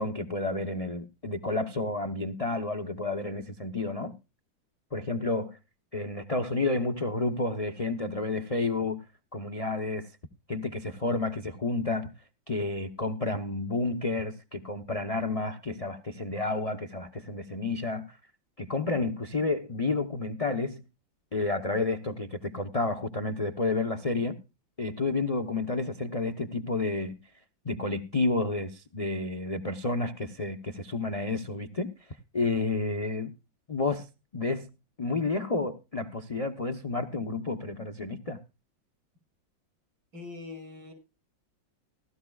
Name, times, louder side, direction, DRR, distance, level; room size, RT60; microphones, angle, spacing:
voice 1, 0.0-4.1 4.9-5.6 5.9-9.0 9.3-10.1 10.5-12.1 12.5-18.1 18.6-20.8 21.3-24.4 24.8-27.2 27.6-31.9 32.3-33.3 33.7-34.1 34.3-34.7 35.0-38.4, left 3 dB, 60° left, 0.3 m, -30 dB
voice 2, 40.1-40.9, left 3 dB, 75° right, 7.1 m, -42 dB
17.5 x 13.5 x 2.3 m
omnidirectional pair, 2.1 m